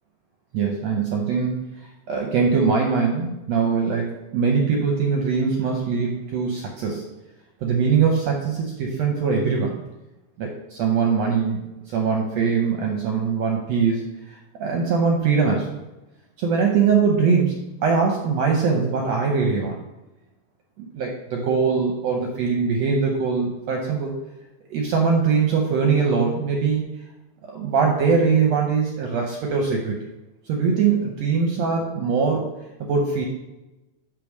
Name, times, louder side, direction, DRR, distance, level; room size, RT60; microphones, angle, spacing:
voice 1, 0.5-1.6 2.1-7.0 7.6-9.7 10.4-11.6 11.9-15.7 16.4-19.8 20.8-24.1 24.7-26.8 27.4-29.9 30.5-32.4 32.8-33.2, right 5 dB, 70° right, 1 dB, 1.6 m, -22 dB
8.4 x 3.2 x 6.4 m, 1.0 s
omnidirectional pair, 3.8 m